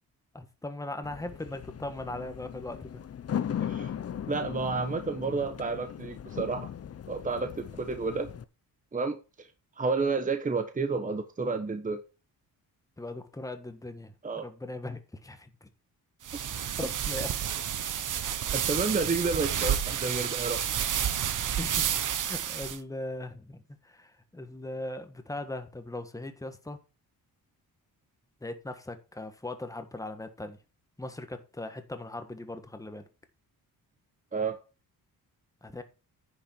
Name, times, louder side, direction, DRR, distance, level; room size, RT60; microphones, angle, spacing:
voice 1, 0.3-3.0 13.0-15.7 16.8-17.3 21.2-26.8 28.4-30.6 31.0-33.0 35.6-35.8, left 2 dB, 10° left, 1.5 m, -39 dB
sound 1, 1.0-8.4, left 9 dB, 40° left, 0.8 m, -38 dB
voice 2, 4.3-6.7 7.1-8.3 8.9-9.5 9.8-12.0 14.2-14.4 16.3-16.8 18.5-20.6 34.3-34.6, right 4 dB, 20° right, 1.1 m, -31 dB
sound 2, 16.2-22.8, right 9 dB, 55° right, 1.1 m, -30 dB
10.5 x 6.7 x 4.5 m
cardioid pair, 140°, 37 cm